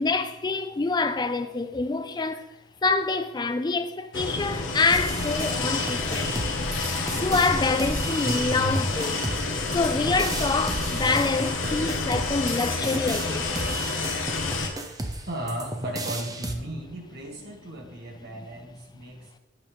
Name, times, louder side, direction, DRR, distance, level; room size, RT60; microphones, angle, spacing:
voice 1, 0.0-2.4 2.8-6.4 7.1-9.2 9.7-13.5, left 3 dB, 20° left, 0.4 m, -26 dB
sound 1, 4.1-14.7, left 3 dB, 75° left, 1.1 m, -29 dB
sound 2, 4.9-16.5, right 2 dB, 20° right, 0.7 m, -35 dB
voice 2, 8.2-8.9 10.9-11.3 14.7-14.8 15.3-19.4, right 1 dB, 55° right, 1.6 m, -34 dB
8.5 x 3.5 x 6.2 m
head